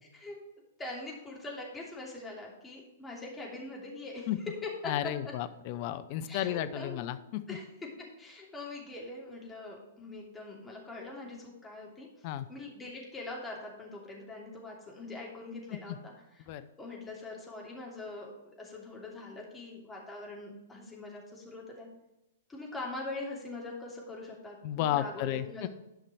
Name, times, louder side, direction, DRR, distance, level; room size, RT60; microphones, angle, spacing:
voice 1, 0.8-4.3 4.6-5.3 6.3-7.1 7.5-7.6 8.0-16.1 16.8-21.9 22.5-25.7, left 2 dB, 10° left, -2 dB, 2.8 m, -43 dB
voice 2, 4.8-7.6 12.2-12.5 16.5-16.6 24.6-25.7, left 12 dB, 45° left, 12 dB, 0.7 m, -33 dB
11.5 x 5.8 x 4.9 m, 0.92 s
figure-of-eight pair, 110°, 0 cm